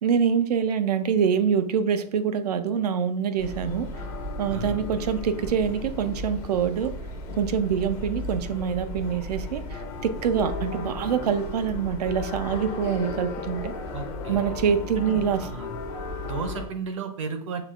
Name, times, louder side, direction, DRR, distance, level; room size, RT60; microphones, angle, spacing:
voice 1, 0.0-4.0 4.4-7.0 7.3-13.8 14.3-15.5, right 7 dB, 85° right, 11 dB, 0.5 m, -25 dB
sound 1, 3.4-16.7, left 2 dB, 15° left, 0.4 m, -35 dB
voice 2, 4.5-4.8 13.9-14.5 15.1-15.7 16.2-17.6, right 4 dB, 55° right, 7 dB, 0.8 m, -34 dB
6.6 x 2.4 x 2.4 m, 0.62 s
supercardioid pair, 175°, 20 cm